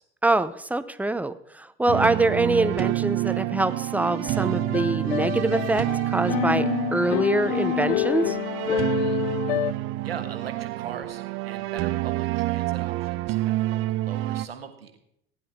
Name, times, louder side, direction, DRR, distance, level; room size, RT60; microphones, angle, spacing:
voice 1, 0.2-8.4, right 2 dB, 5° right, 14 dB, 0.6 m, -24 dB
sound 1, 1.9-14.5, right 17 dB, 45° right, 0.6 m, -28 dB
sound 2, 4.2-9.7, left 16 dB, 70° left, 0.4 m, -28 dB
voice 2, 8.9-9.3 10.0-15.0, right 7 dB, 85° right, 7 dB, 1.4 m, -40 dB
16.0 x 10.0 x 3.6 m, 0.73 s
figure-of-eight pair, 70°, 29 cm